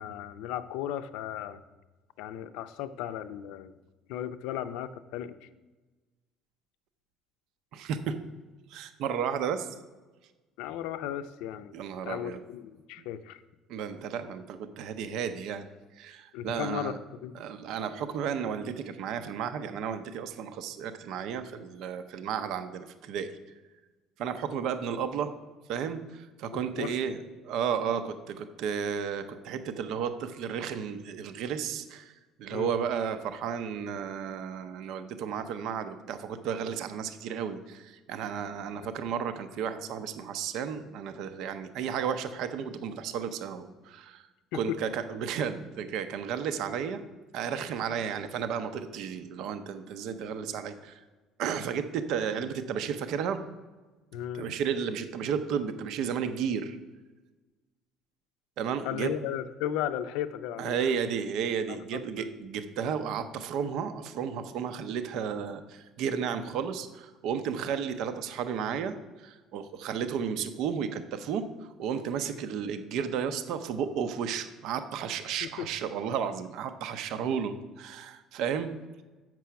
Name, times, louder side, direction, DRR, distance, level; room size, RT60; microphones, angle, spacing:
voice 1, 0.0-1.6 2.2-3.7 4.1-5.5 10.6-11.7 12.0-13.4 16.3-17.3 26.5-27.0 32.5-32.8 44.5-44.8 54.1-54.5 58.8-61.0 61.7-62.3 75.4-75.7, left 10 dB, 85° left, 12 dB, 0.5 m, -36 dB
voice 2, 7.7-8.2 8.7-9.7 11.7-12.4 13.7-15.6 16.0-17.0 17.3-23.4 24.2-25.3 25.7-32.1 32.4-44.3 44.5-47.0 47.3-51.0 51.4-53.4 54.3-56.8 58.6-59.1 60.6-78.8, right 7 dB, 60° right, 10 dB, 0.6 m, -33 dB
7.5 x 6.1 x 5.7 m, 1.2 s
cardioid pair, 160°, 0 cm